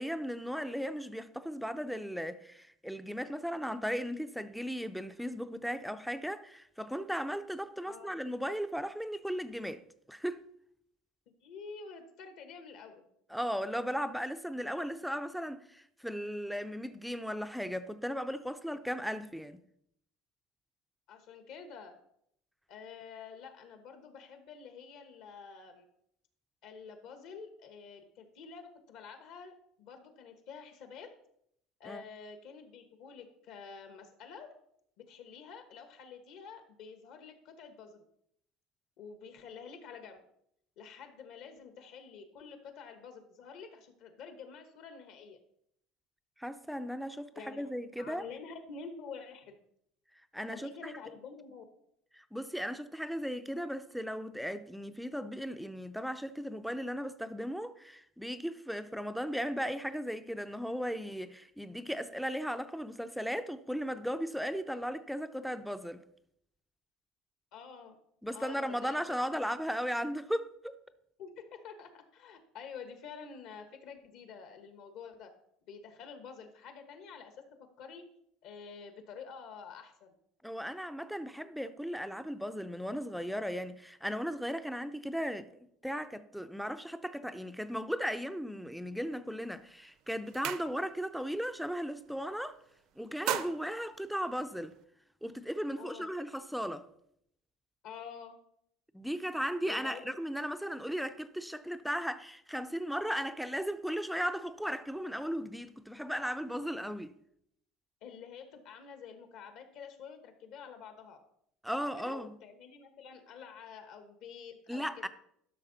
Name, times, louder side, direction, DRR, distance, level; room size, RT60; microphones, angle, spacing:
voice 1, 0.0-9.8 10.1-10.4 13.3-19.6 31.8-32.0 46.4-48.2 50.3-50.9 52.1-66.0 68.2-70.8 80.4-85.5 85.8-92.6 93.0-94.7 95.2-96.9 98.9-107.1 111.6-112.3 114.7-115.1, equal, ahead, 0.4 m, -36 dB
voice 2, 7.8-8.2 11.4-13.0 21.1-21.9 22.7-25.8 26.6-31.1 31.8-34.5 35.0-38.0 39.0-40.2 40.8-45.4 47.3-47.7 48.0-49.5 50.5-51.6 67.5-68.0 68.3-69.3 69.7-69.8 71.2-75.3 75.7-77.4 77.8-78.0 78.4-80.1 95.8-96.1 97.8-98.3 99.6-100.2 108.0-111.2 111.7-115.0, left 6 dB, 60° left, 1.1 m, -48 dB
sound 1, 89.4-89.7 90.0-91.2 91.5-91.8 92.1-92.6 93.0-94.8, right 11 dB, 60° right, 0.6 m, -39 dB
11.5 x 6.2 x 3.9 m
cardioid pair, 155°, 0 cm